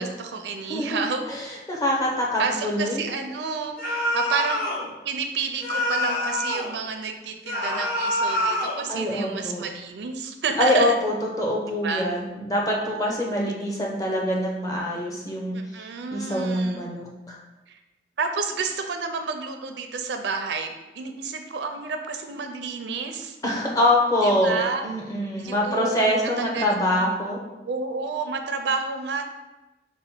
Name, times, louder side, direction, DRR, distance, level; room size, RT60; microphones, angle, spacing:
voice 1, 0.0-1.3 2.4-4.6 5.0-11.0 11.7-12.1 15.5-16.9 17.7-17.8 18.2-23.4 24.2-24.8 25.4-27.0 27.7-29.2, right 4 dB, 80° right, 6 dB, 0.4 m, -30 dB
voice 2, 0.7-3.0 8.9-9.6 10.6-15.6 16.1-17.4 23.4-27.4, left 1 dB, 20° left, -2 dB, 0.7 m, -24 dB
sound 1, 3.8-4.8 5.6-6.7 7.4-8.8, left 1 dB, 55° left, 1.0 m, -26 dB
5.2 x 2.2 x 4.3 m, 1.1 s
head